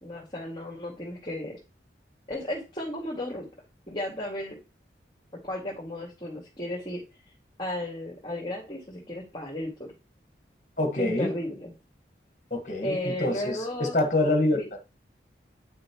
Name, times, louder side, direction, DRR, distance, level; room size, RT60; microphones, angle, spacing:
voice 1, 0.0-1.6 2.3-3.5 3.9-4.6 5.4-7.0 7.6-9.9 11.0-11.7 12.8-14.0 14.5-14.6, left 1 dB, 25° left, 2.2 m, -34 dB
voice 2, 10.8-11.3 12.5-14.6, left 2 dB, 40° left, 1.7 m, -26 dB
9.5 x 6.2 x 3.1 m
head